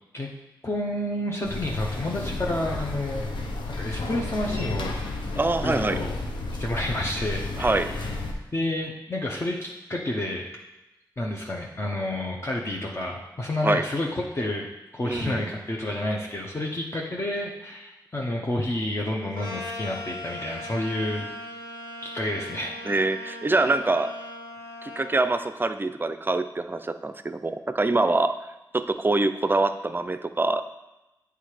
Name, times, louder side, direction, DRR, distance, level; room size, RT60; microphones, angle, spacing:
voice 1, 0.6-3.3 3.7-5.0 5.6-6.1 6.6-10.5 11.2-21.3 22.0-22.7, left 1 dB, 35° left, -2 dB, 0.9 m, -30 dB
sound 1, 1.4-8.3, left 2 dB, 85° left, 0.8 m, -32 dB
voice 2, 5.4-6.0 7.6-7.9 13.6-13.8 15.0-15.5 22.9-24.1 24.8-28.3 28.7-30.7, right 2 dB, 25° right, 10 dB, 0.5 m, -25 dB
sound 2, 19.3-25.2, left 2 dB, 60° left, 1.6 m, -39 dB
8.0 x 3.4 x 4.9 m, 0.98 s
cardioid pair, 50°, 8 cm